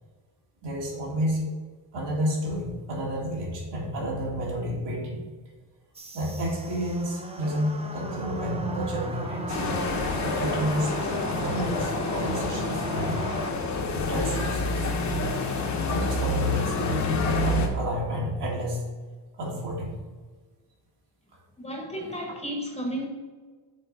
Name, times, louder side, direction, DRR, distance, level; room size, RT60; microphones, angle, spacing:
voice 1, 0.6-1.5 1.9-5.2 6.1-9.6 10.2-13.3 13.9-14.9 15.5-18.9 19.4-19.9, equal, 60° right, -3 dB, 2.3 m, -30 dB
sound 1, 5.9-13.5, right 2 dB, 15° right, 0.5 m, -36 dB
sound 2, 9.5-17.7, left 3 dB, 35° left, 0.9 m, -28 dB
voice 2, 21.6-23.1, equal, 15° left, 0 dB, 1.0 m, -33 dB
6.8 x 4.1 x 5.3 m, 1.4 s
cardioid pair, 155°, 47 cm